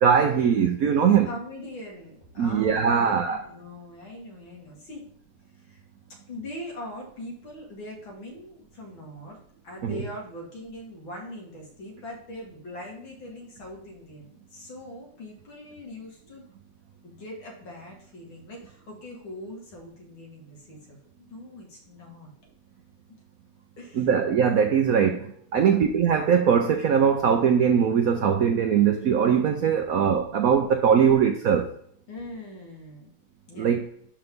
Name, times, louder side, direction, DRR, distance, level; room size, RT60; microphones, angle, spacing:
voice 1, 0.0-1.3 2.4-3.4 9.8-10.0 23.9-31.7 33.6-33.8, right 7 dB, 85° right, 0.7 m, -21 dB
voice 2, 1.2-5.1 5.5-5.8 6.3-9.4 9.6-16.4 17.0-22.3 23.8-24.1 25.5-25.8 32.1-33.1 33.5-33.7, left 1 dB, 65° left, 2.9 m, -41 dB
11.5 x 3.9 x 3.6 m
omnidirectional pair, 2.3 m